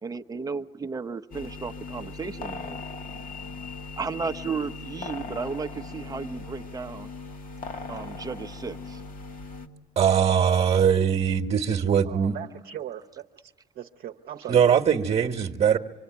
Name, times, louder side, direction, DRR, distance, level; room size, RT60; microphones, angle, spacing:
voice 1, 0.0-2.8 4.0-7.1 7.9-9.0, right 5 dB, 20° right, 6 dB, 0.8 m, -34 dB
sound 1, 1.3-9.7, left 4 dB, 55° left, 2.0 m, -39 dB
voice 2, 10.0-12.4 14.5-15.8, right 8 dB, 40° right, 4 dB, 1.3 m, -21 dB
voice 3, 12.0-13.5 13.8-14.8, right 11 dB, 60° right, 3 dB, 0.9 m, -39 dB
26.0 x 24.5 x 9.4 m, 1.3 s
cardioid pair, 110°, 17 cm